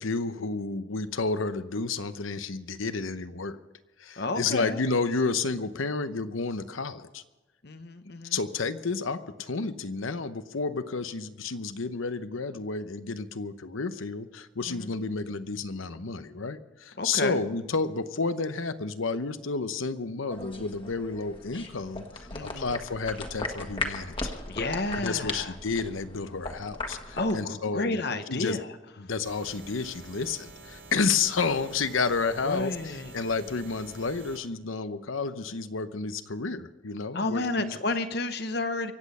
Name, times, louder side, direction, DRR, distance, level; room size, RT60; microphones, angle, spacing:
voice 1, 0.0-3.6 4.0-7.2 8.3-24.3 25.0-28.6 29.0-37.7, left 4 dB, 90° left, 12 dB, 0.9 m, -31 dB
voice 2, 4.2-4.8 7.6-8.4 14.6-14.9 17.0-17.4 22.3-22.7 24.5-25.5 27.1-28.7 32.4-33.1 37.1-38.9, left 2 dB, 55° left, 9 dB, 0.9 m, -31 dB
sound 1, 20.3-27.4, left 2 dB, 25° left, 1.5 m, -38 dB
sound 2, 29.2-34.4, right 3 dB, 90° right, 4.0 m, -48 dB
24.5 x 8.6 x 5.5 m, 1.1 s
head